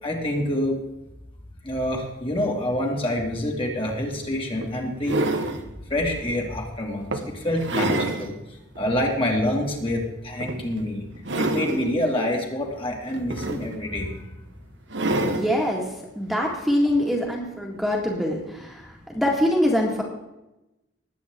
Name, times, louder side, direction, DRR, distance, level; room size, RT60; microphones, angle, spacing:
voice 1, 0.0-0.8 1.6-5.5 5.9-11.1 11.4-14.3, left 1 dB, 30° left, 0 dB, 2.3 m, -27 dB
sound 1, 3.9-4.0 4.6-5.6 6.3-6.5 7.1-8.3 8.7-8.8 10.4-10.8 11.1-11.9 13.1-14.0 14.9-15.5 16.9-17.0, right 2 dB, 75° right, 1.4 m, -27 dB
voice 2, 15.2-15.9 16.2-20.0, left 1 dB, ahead, -2 dB, 1.9 m, -24 dB
20.0 x 8.7 x 3.7 m, 0.93 s
head